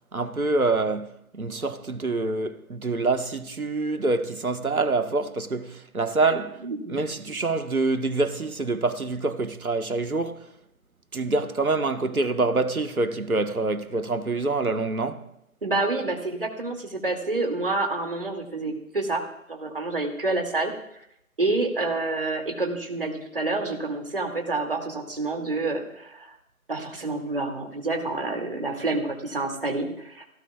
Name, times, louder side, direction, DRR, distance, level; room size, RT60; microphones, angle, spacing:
voice 1, 0.1-6.6 6.9-10.5 11.1-15.3, right 3 dB, 85° right, 1.5 m, -26 dB
voice 2, 6.6-7.0 15.6-19.2 19.5-20.7 21.4-26.3 26.7-30.3, right 2 dB, 40° right, 2.5 m, -28 dB
28.0 x 17.0 x 2.4 m
figure-of-eight pair, 170°, 42 cm